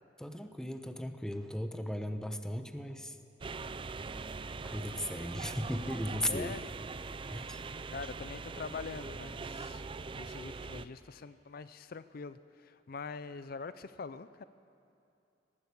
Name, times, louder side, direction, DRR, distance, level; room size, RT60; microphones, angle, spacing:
voice 1, 0.2-3.2 3.6-3.7 4.6-6.5 7.3-7.6, equal, 5° left, 8 dB, 0.8 m, -37 dB
sound 1, 3.4-10.9, right 4 dB, 30° right, 0.5 m, -42 dB
voice 2, 6.3-6.6 7.9-9.8 10.1-14.4, left 4 dB, 55° left, 14 dB, 0.5 m, -43 dB
19.0 x 17.0 x 8.3 m, 2.6 s
head